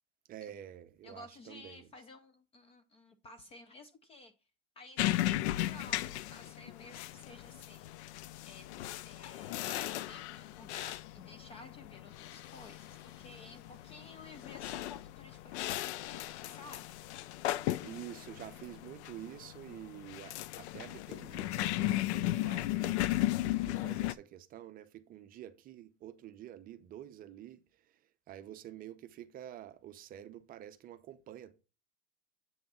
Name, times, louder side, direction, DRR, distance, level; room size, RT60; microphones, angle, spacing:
voice 1, 0.3-1.9 17.8-23.1 23.6-28.0 28.3-31.5, right 12 dB, 25° right, 0.6 m, -49 dB
voice 2, 1.0-4.3 4.8-8.2 8.5-8.7 9.0-17.0, left 2 dB, 20° left, 0.4 m, -54 dB
sound 1, 5.0-24.1, left 15 dB, 75° left, 0.5 m, -36 dB
sound 2, 12.2-15.2, left 8 dB, 50° left, 1.1 m, -64 dB
7.8 x 3.4 x 5.4 m
supercardioid pair, 145°, 34 cm